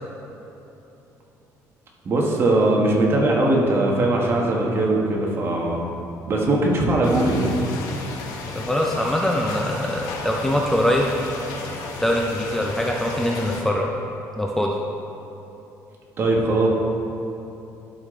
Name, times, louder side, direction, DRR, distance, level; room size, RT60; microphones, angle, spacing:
voice 1, 2.0-5.9 6.2-7.6 16.2-16.7, right 2 dB, 40° right, -1 dB, 1.5 m, -20 dB
sound 1, 7.0-13.6, left 3 dB, 80° left, 1.1 m, -33 dB
voice 2, 8.5-11.1 12.0-13.9 14.3-14.7, left 1 dB, 5° left, 0 dB, 0.5 m, -23 dB
12.0 x 5.1 x 3.8 m, 3.0 s
cardioid pair, 120°, 6 cm